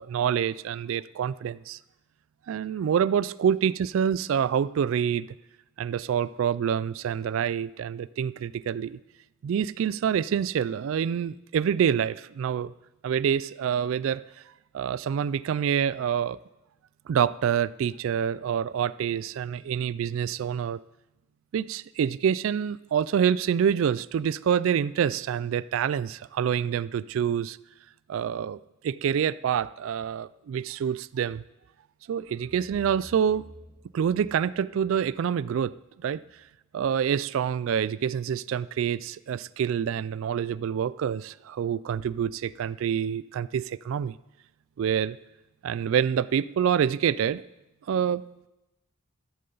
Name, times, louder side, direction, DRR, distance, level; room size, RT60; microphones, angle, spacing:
voice 1, 0.0-1.8 2.5-5.3 5.8-9.0 9.4-12.7 13.0-14.2 14.7-16.4 17.1-20.8 21.5-27.6 28.1-28.6 28.8-31.4 32.1-33.4 33.9-35.7 36.0-36.2 36.7-44.2 44.8-45.2 45.6-47.4 47.9-48.2, right 8 dB, 65° right, 18 dB, 0.3 m, -26 dB
sound 1, 32.2-36.4, equal, 25° left, 3.0 m, -51 dB
13.5 x 12.5 x 3.9 m, 0.95 s
head